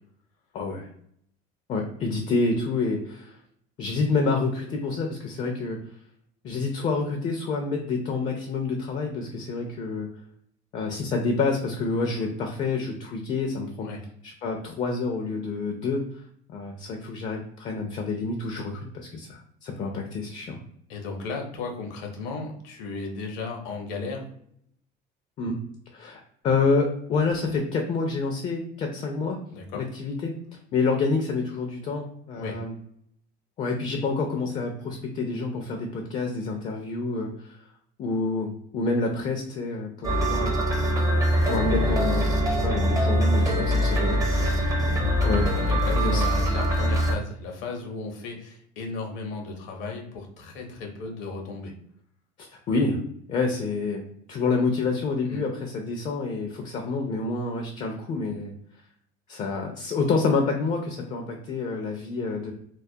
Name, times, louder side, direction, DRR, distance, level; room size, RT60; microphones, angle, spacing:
voice 1, 0.5-0.9 1.7-3.4 3.8-5.8 6.4-10.1 10.7-13.9 14.2-16.0 16.5-20.6 25.4-25.6 25.9-29.4 29.7-32.7 33.6-37.6 38.0-40.5 41.4-44.8 45.2-46.2 52.4-53.0 53.3-58.5 59.3-62.5, left 3 dB, 40° left, 2 dB, 0.4 m, -28 dB
voice 2, 20.9-24.2 29.5-29.8 32.3-32.6 44.4-44.6 45.6-51.7 55.3-55.4, left 4 dB, 75° left, 2 dB, 0.7 m, -35 dB
sound 1, 40.0-47.1, equal, 20° right, 0.5 m, -23 dB
2.3 x 2.0 x 2.6 m, 0.68 s
cardioid pair, 120°, 19 cm